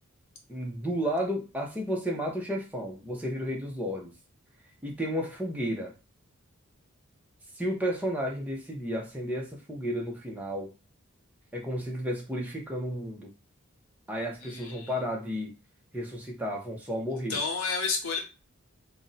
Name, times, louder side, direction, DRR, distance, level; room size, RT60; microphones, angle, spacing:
voice 1, 0.5-4.1 4.8-5.9 7.6-10.7 11.5-13.3 14.1-15.5 15.9-17.4, equal, 5° right, -1 dB, 0.6 m, -32 dB
voice 2, 14.4-15.0 17.3-18.2, left 4 dB, 85° left, 3 dB, 0.8 m, -31 dB
2.5 x 2.1 x 3.9 m, 0.30 s
head